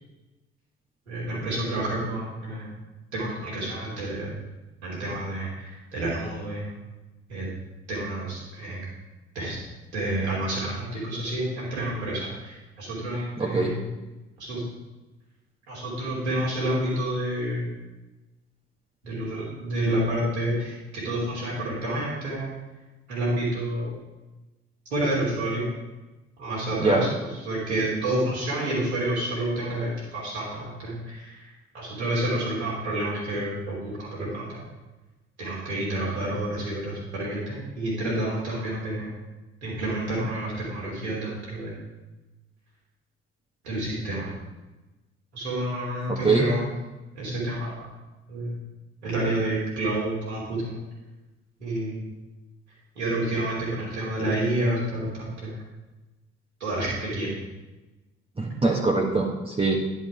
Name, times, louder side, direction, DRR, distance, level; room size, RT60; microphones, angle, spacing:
voice 1, 1.1-2.8 3.1-4.4 4.8-6.8 7.3-7.5 7.9-8.8 9.3-9.6 9.9-13.8 14.4-14.6 15.7-17.7 19.0-22.5 23.1-23.9 24.9-25.7 26.4-27.1 27.4-34.6 35.4-39.2 39.6-41.8 43.6-44.3 45.3-46.7 47.1-47.9 48.3-48.6 49.0-50.8 51.6-52.0 52.9-55.6 56.6-57.3, right 1 dB, 85° right, -6 dB, 3.1 m, -29 dB
voice 2, 13.4-13.7 26.8-27.0 46.1-46.5 58.4-59.8, right 3 dB, 15° right, -2 dB, 1.3 m, -23 dB
10.5 x 5.6 x 4.8 m, 1.1 s
figure-of-eight pair, 50°, 33 cm